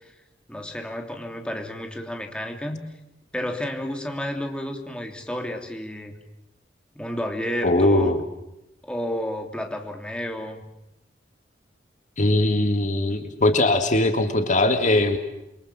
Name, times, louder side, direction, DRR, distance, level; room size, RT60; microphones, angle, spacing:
voice 1, 0.5-2.8 3.3-6.1 6.9-8.2 8.8-10.6, equal, 5° left, 3 dB, 3.2 m, -31 dB
voice 2, 7.6-8.2 12.2-15.2, left 2 dB, 45° left, 7 dB, 1.9 m, -20 dB
28.5 x 24.0 x 7.5 m, 0.87 s
head